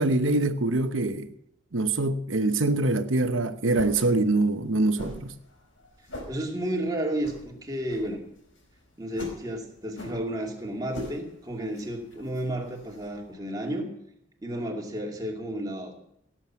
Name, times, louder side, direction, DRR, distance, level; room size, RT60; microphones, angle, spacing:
voice 1, 0.0-1.3 1.7-5.3, right 2 dB, 90° right, 1.0 m, -24 dB
sound 1, 2.6-13.3, left 1 dB, 80° left, 4.9 m, -44 dB
voice 2, 6.3-8.2 9.0-13.9 14.4-16.0, right 1 dB, 20° right, 2.5 m, -32 dB
17.0 x 7.5 x 7.4 m
head